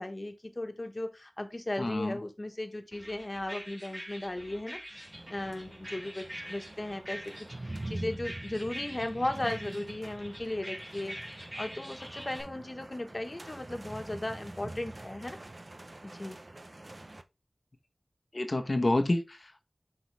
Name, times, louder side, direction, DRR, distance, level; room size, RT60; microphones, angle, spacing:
voice 1, 0.0-5.0 5.3-11.2 11.6-15.4 16.0-16.4, left 1 dB, 40° left, 1.5 m, -36 dB
voice 2, 1.8-2.2 18.3-19.6, left 2 dB, 55° left, 1.0 m, -28 dB
sound 1, 2.9-12.4, equal, 20° right, 3.0 m, -45 dB
sound 2, 4.9-17.2, right 2 dB, 50° right, 0.6 m, -45 dB
7.3 x 4.8 x 3.5 m
wide cardioid pair, 55°, 0 cm